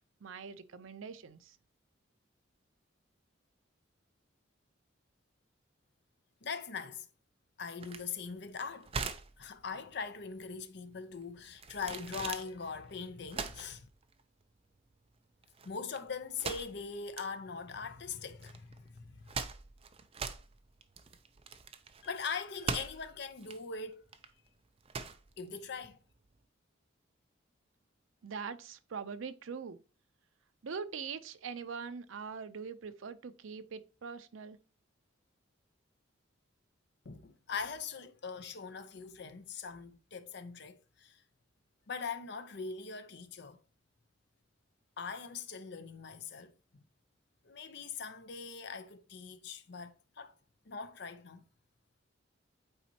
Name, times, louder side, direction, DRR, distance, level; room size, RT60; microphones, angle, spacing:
voice 1, 0.0-1.6 28.2-29.8 30.6-34.6, right 5 dB, 80° right, 0.5 m, -43 dB
voice 2, 6.4-7.0 7.6-8.9 9.4-13.9 15.6-18.7 19.0-19.3 22.0-24.1 25.4-26.0 37.1-41.1 41.9-43.6 45.0-46.5 47.5-50.3 50.7-51.4, left 5 dB, 55° left, 0.6 m, -41 dB
sound 1, 7.8-26.3, right 5 dB, 30° right, 0.5 m, -43 dB
8.8 x 4.2 x 2.8 m
head